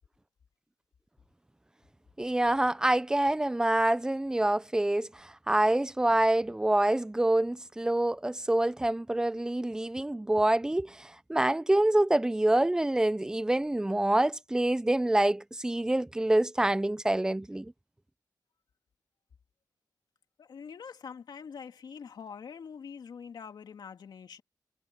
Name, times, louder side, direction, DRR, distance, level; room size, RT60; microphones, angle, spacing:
voice 1, 2.2-17.7, right 1 dB, 10° right, 0.5 m, -26 dB
voice 2, 20.4-24.4, left 6 dB, 80° left, 2.8 m, -44 dB
wide cardioid pair, 135°, 7 cm